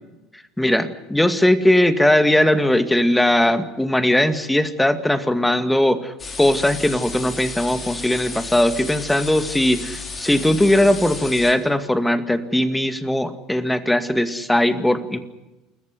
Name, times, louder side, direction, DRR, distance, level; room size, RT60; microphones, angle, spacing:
voice 1, 0.6-15.2, left 1 dB, 5° left, 9 dB, 2.2 m, -19 dB
sound 1, 6.2-11.5, left 4 dB, 30° left, 5.8 m, -33 dB
29.0 x 14.5 x 9.9 m, 1.0 s
hypercardioid pair, 70°, 0 cm